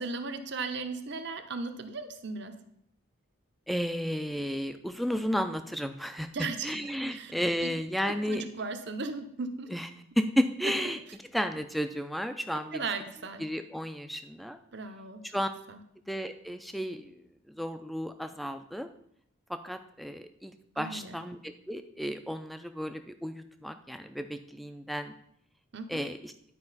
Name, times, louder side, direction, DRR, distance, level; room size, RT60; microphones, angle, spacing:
voice 1, 0.0-2.5 6.3-6.7 7.1-7.3 7.6-7.7 8.1-9.7 12.7-13.4 14.7-15.2 15.7-15.8 20.7-21.2 25.7-26.0, right 4 dB, 55° right, 7 dB, 0.7 m, -36 dB
voice 2, 3.7-6.3 6.6-8.5 9.7-9.9 10.2-11.0 11.3-12.9 13.4-14.6 15.3-15.5 16.1-17.2 17.5-18.9 19.5-25.1 25.9-26.3, equal, ahead, 8 dB, 0.3 m, -33 dB
11.0 x 4.9 x 4.0 m, 0.71 s
head